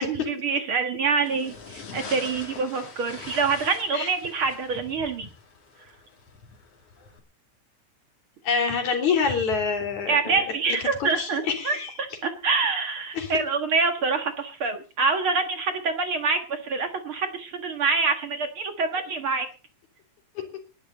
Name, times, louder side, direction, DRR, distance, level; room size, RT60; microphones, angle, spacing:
voice 1, 0.0-5.3 10.1-19.5, right 4 dB, 50° right, 7 dB, 2.2 m, -26 dB
sound 1, 1.2-7.2, left 4 dB, 55° left, 4.0 m, -43 dB
voice 2, 8.4-10.4 11.0-11.9 13.1-13.3 20.4-20.5, left 5 dB, 75° left, 4 dB, 4.7 m, -26 dB
20.0 x 12.0 x 4.1 m, 0.34 s
omnidirectional pair, 3.4 m